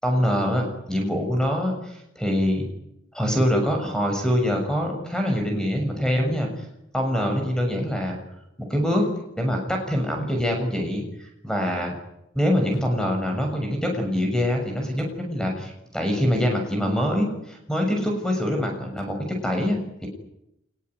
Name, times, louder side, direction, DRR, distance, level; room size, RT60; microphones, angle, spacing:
voice 1, 0.0-2.7 3.1-6.5 6.9-8.2 8.6-9.1 9.4-11.9 12.4-20.1, equal, 5° left, 3 dB, 6.8 m, -24 dB
25.5 x 21.5 x 9.6 m, 0.82 s
head